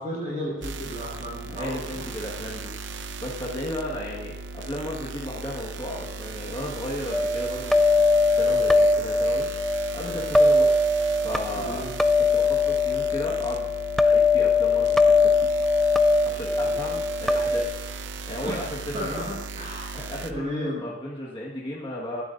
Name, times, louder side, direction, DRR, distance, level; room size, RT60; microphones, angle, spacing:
voice 1, 0.0-2.0 11.5-11.9 16.6-16.9 18.4-18.6 18.9-20.0 20.3-20.8, equal, 30° right, -9 dB, 6.1 m, -34 dB
sound 1, 0.6-20.3, right 3 dB, 70° right, 0.7 m, -37 dB
voice 2, 1.5-2.7 3.2-7.7 8.3-9.5 9.9-10.7 11.2-11.9 12.2-13.7 14.0-15.5 16.2-17.8 18.3-19.3 19.9-22.2, left 1 dB, 25° left, -4 dB, 1.6 m, -34 dB
sound 2, 7.1-17.7, left 3 dB, ahead, 0.4 m, -21 dB
26.0 x 11.5 x 2.6 m, 1.0 s
head